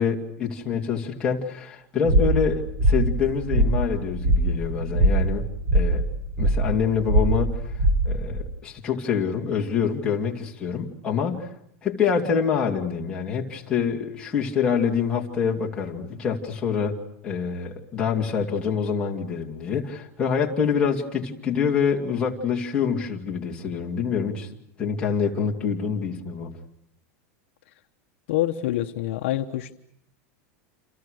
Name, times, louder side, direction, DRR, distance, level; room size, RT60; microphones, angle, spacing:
voice 1, 0.0-5.5 5.7-6.1 6.4-7.7 8.0-11.5 11.8-17.0 17.2-24.5 24.8-26.5, left 6 dB, 10° left, -2 dB, 2.6 m, -26 dB
sound 1, 2.0-8.4, right 1 dB, 20° right, 5.3 m, -22 dB
voice 2, 28.3-29.7, left 14 dB, 55° left, 6 dB, 1.1 m, -26 dB
29.0 x 27.5 x 6.5 m, 0.72 s
supercardioid pair, 180°, 8 cm